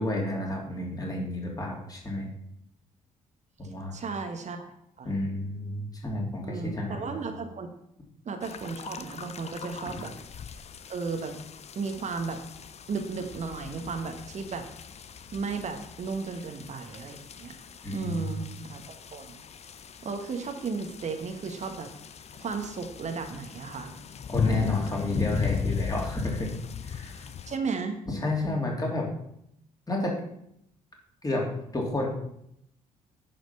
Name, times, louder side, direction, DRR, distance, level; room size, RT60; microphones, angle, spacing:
voice 1, 0.0-2.3 3.6-4.0 5.1-7.2 17.8-18.4 24.3-26.5 26.8-27.3 28.1-29.1 29.9-30.2 31.2-31.4 31.7-32.1, left 1 dB, 20° left, -1 dB, 3.4 m, -31 dB
voice 2, 3.9-4.7 5.0-5.1 6.4-7.7 8.2-10.1 10.9-11.4 11.7-12.4 12.9-14.7 15.3-17.5 17.9-19.4 20.0-21.9 22.4-23.9 27.5-28.0, right 4 dB, 40° right, 5 dB, 1.2 m, -34 dB
sound 1, 8.4-27.6, left 7 dB, 35° left, 0.7 m, -37 dB
10.5 x 5.0 x 5.5 m, 0.74 s
figure-of-eight pair, 45°, 18 cm